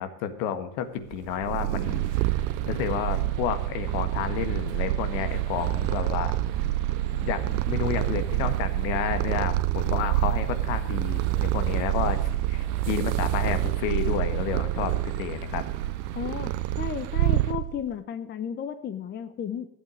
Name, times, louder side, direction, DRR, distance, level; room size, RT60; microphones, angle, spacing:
voice 1, 0.0-2.3 2.7-6.3 7.1-15.6, left 8 dB, 80° left, 10 dB, 1.7 m, -31 dB
Purr, 1.1-17.9, right 18 dB, 90° right, 0.6 m, -27 dB
sound 1, 1.8-17.5, right 8 dB, 70° right, 1.5 m, -36 dB
voice 2, 16.1-16.5 16.8-19.7, left 8 dB, 25° left, 11 dB, 0.7 m, -33 dB
13.0 x 8.6 x 6.3 m, 0.77 s
cardioid pair, 150°, 41 cm